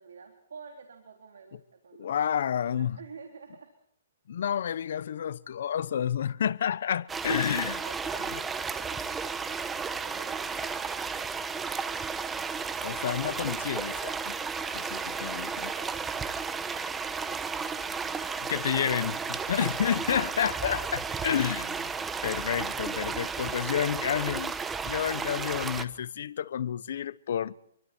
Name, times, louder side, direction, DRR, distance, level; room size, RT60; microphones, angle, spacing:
voice 1, 0.0-2.1 2.5-3.7 7.3-8.4 8.8-11.3 14.6-17.4 17.7-18.4 20.7-20.8, right 5 dB, 85° right, 3.6 m, -50 dB
voice 2, 2.0-3.0 4.3-7.8 12.8-14.4 15.2-15.7 18.5-21.9 22.2-24.5 24.8-27.6, left 9 dB, 65° left, 0.9 m, -30 dB
sound 1, 7.1-25.8, right 5 dB, 10° right, 1.0 m, -33 dB
28.0 x 24.0 x 4.5 m
hypercardioid pair, 155°, 0 cm